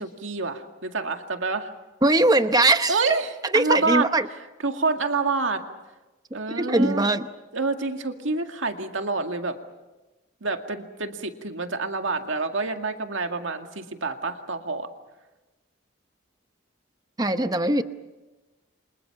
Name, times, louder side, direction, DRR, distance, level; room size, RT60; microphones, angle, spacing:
voice 1, 0.0-1.7 2.9-4.1 4.6-5.6 6.3-7.1 7.5-9.6 10.4-14.9, right 3 dB, 70° right, 5 dB, 2.1 m, -27 dB
voice 2, 2.0-3.0 3.5-4.3 6.5-7.3 17.2-17.8, right 2 dB, 20° right, 9 dB, 0.9 m, -21 dB
29.0 x 26.0 x 5.9 m, 1.1 s
head